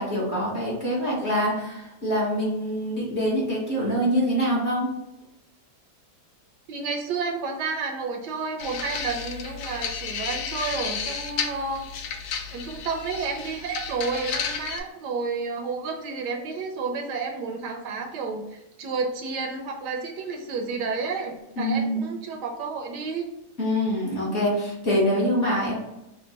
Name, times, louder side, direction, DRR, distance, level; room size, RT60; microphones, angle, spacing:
voice 1, 0.0-4.9 21.6-22.0 23.6-25.8, equal, 45° left, -4 dB, 1.0 m, -25 dB
voice 2, 6.7-12.2 12.5-23.2, right 4 dB, 75° right, 3 dB, 1.1 m, -31 dB
sound 1, 8.6-14.8, left 7 dB, 85° left, 1.3 m, -32 dB
3.5 x 2.2 x 3.9 m, 0.90 s
omnidirectional pair, 1.9 m